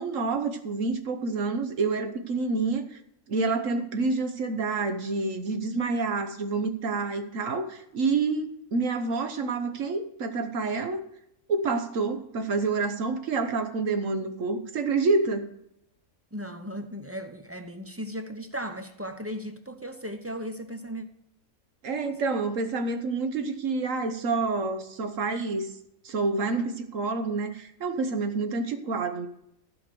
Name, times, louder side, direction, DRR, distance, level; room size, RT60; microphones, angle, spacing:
voice 1, 0.0-3.0 3.3-11.0 11.5-15.5 21.8-25.7 26.0-29.3, right 3 dB, 65° right, 1.3 m, -28 dB
voice 2, 16.3-21.1 22.1-22.2, equal, 20° right, 0.4 m, -36 dB
15.0 x 5.3 x 6.8 m
omnidirectional pair, 1.5 m